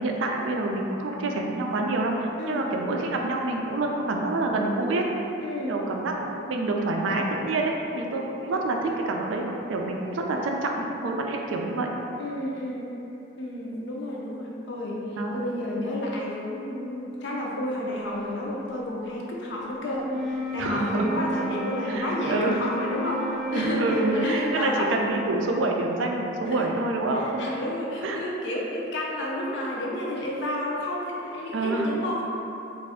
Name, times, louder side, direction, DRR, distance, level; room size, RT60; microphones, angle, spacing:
voice 1, 0.0-2.2 2.5-5.1 5.6-11.9 15.2-15.4 20.6-21.1 21.8-22.6 23.5-27.4 28.0-28.2 31.5-31.9, right 2 dB, 75° right, 1 dB, 0.4 m, -27 dB
voice 2, 5.4-5.8 12.2-12.9 13.4-15.0 15.3-23.3 23.5-24.9 26.5-26.7 27.2-32.2, left 1 dB, 65° left, -3 dB, 0.6 m, -31 dB
Wind instrument woodwind instrument, 19.9-24.7, right 2 dB, ahead, 0.4 m, -32 dB
3.4 x 2.5 x 3.4 m, 2.9 s
head